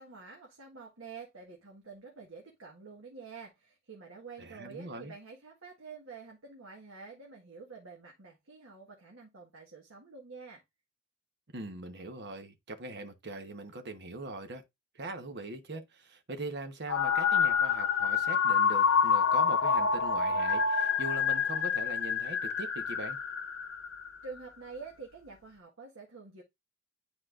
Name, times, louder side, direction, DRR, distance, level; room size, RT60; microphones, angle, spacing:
voice 1, 0.0-10.6 24.2-26.4, right 4 dB, 85° right, 1.6 m, -48 dB
voice 2, 4.4-5.1 11.5-14.6 14.9-23.2, right 2 dB, 55° right, 1.1 m, -41 dB
sound 1, 16.9-24.2, left 6 dB, 70° left, 0.7 m, -27 dB
9.9 x 4.2 x 2.5 m
head